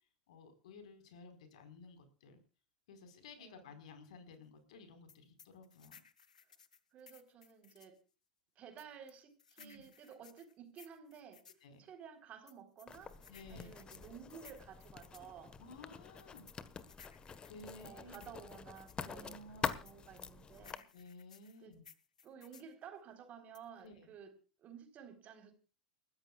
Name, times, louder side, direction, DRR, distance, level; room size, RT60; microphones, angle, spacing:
voice 1, 0.3-2.4 2.9-6.0 9.6-9.8 11.6-11.8 13.3-13.7 15.6-16.5 17.5-18.3 19.0-19.7 20.9-21.8 23.8-24.1, left 3 dB, 70° left, 8 dB, 4.7 m, -55 dB
sound 1, 5.1-8.0 8.8-11.6 12.5-15.3 16.2-19.0 19.8-22.7 23.5-23.9, left 6 dB, 85° left, 1.2 m, -61 dB
voice 2, 6.9-8.0 8.6-11.4 11.8-15.6 17.8-20.9 21.6-21.8 22.2-24.3 24.6-25.5, right 7 dB, 40° right, 7 dB, 4.0 m, -54 dB
Writing, 12.9-20.8, left 6 dB, 25° left, 1.4 m, -46 dB
29.5 x 14.0 x 2.4 m, 0.34 s
hypercardioid pair, 90°, 4 cm